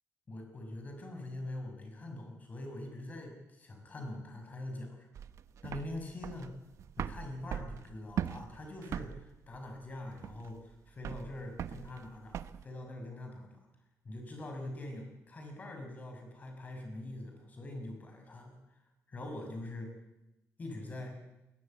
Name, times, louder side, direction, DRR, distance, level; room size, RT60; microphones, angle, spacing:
voice 1, 0.3-5.1 5.6-6.6 7.0-13.6 14.0-18.6 19.1-19.9 20.6-21.2, left 1 dB, 30° left, 4 dB, 5.7 m, -43 dB
sound 1, 5.1-12.6, right 9 dB, 60° right, 0.9 m, -40 dB
21.0 x 18.0 x 8.7 m, 0.97 s
cardioid pair, 160°, 6 cm